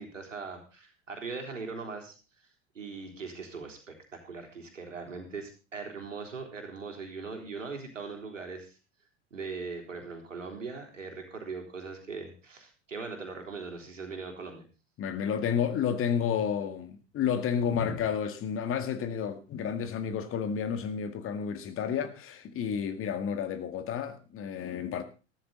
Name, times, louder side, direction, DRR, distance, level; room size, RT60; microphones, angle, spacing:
voice 1, 0.0-2.2 2.8-8.8 9.3-14.6 17.7-17.9, right 4 dB, 90° right, 3.6 m, -40 dB
voice 2, 15.0-25.0, left 7 dB, 35° left, 1.9 m, -31 dB
14.0 x 13.0 x 4.0 m
hypercardioid pair, 90°, 37 cm